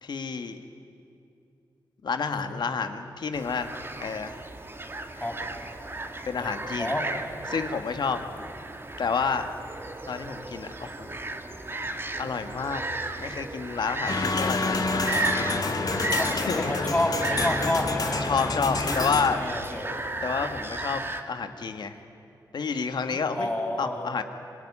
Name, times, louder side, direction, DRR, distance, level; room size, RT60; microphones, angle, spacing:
voice 1, 0.0-0.6 2.0-3.7 4.0-4.4 6.3-6.9 7.5-8.2 9.0-9.4 10.1-11.1 12.2-12.8 13.2-15.3 16.5-16.7 18.2-19.4 20.2-21.0 21.3-22.0 22.5-23.5 23.8-24.2, left 5 dB, 70° left, 8 dB, 1.7 m, -29 dB
sound 1, 3.3-21.2, right 2 dB, 30° right, 2.0 m, -35 dB
voice 2, 6.4-7.1 16.1-19.0 19.2-19.9 23.4-24.1, left 1 dB, 20° left, 1 dB, 5.8 m, -30 dB
sound 2, 14.1-19.4, left 3 dB, 55° left, 2.1 m, -28 dB
26.5 x 18.5 x 10.0 m, 2.6 s
cardioid pair, 60°, 8 cm